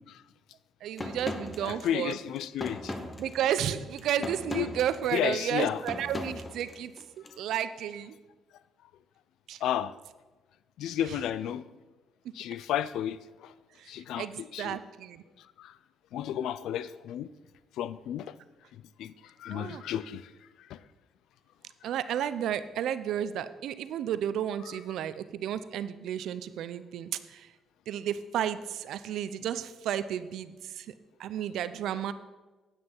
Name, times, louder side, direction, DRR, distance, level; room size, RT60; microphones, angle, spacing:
voice 1, 0.8-2.2 3.2-8.1 9.5-9.6 11.0-11.1 13.8-15.2 19.5-19.8 21.8-27.5 27.9-30.9 31.2-32.1, right 10 dB, 80° right, 13 dB, 0.5 m, -32 dB
sound 1, 1.0-7.3, left 2 dB, 25° left, 1.0 m, -39 dB
voice 2, 1.6-2.9 4.2-4.3 4.6-4.7 5.1-5.8 9.6-9.9 10.8-11.7 12.3-13.5 13.9-14.8 15.6-15.7 16.1-17.3 17.8-18.3 19.0-20.3 20.7-20.8, left 10 dB, 85° left, 17 dB, 0.4 m, -32 dB
9.5 x 9.1 x 4.5 m, 1.2 s
cardioid pair, 90°, 0 cm